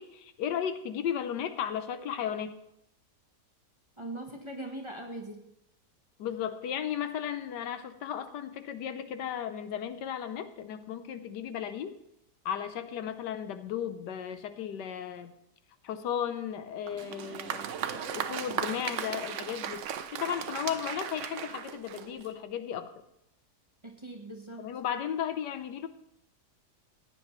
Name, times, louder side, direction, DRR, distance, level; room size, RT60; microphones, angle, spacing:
voice 1, 0.0-2.5 6.2-12.0 12.4-15.3 15.8-17.7 17.9-22.9 24.6-25.9, left 9 dB, 85° left, 11 dB, 1.4 m, -35 dB
voice 2, 4.0-5.4 23.8-24.7, right 1 dB, 20° right, 2 dB, 1.0 m, -41 dB
Applause, 16.9-22.4, right 8 dB, 65° right, 0.7 m, -37 dB
15.0 x 9.5 x 3.1 m, 0.80 s
omnidirectional pair, 1.8 m